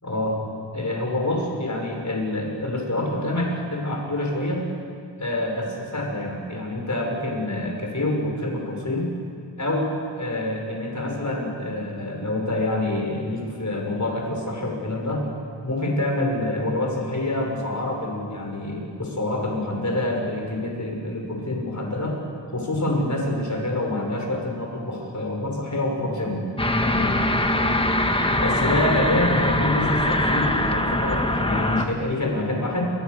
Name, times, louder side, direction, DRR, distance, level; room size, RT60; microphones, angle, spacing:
voice 1, 0.0-0.4 0.7-4.6 5.2-9.1 9.6-15.2 15.6-22.2 22.5-26.4 26.8-27.1 28.4-32.8, left 1 dB, 40° left, 0 dB, 6.3 m, -26 dB
sound 1, 26.6-31.9, left 1 dB, 10° left, 1.6 m, -22 dB
29.5 x 24.0 x 6.8 m, 2.3 s
wide cardioid pair, 85°, 44 cm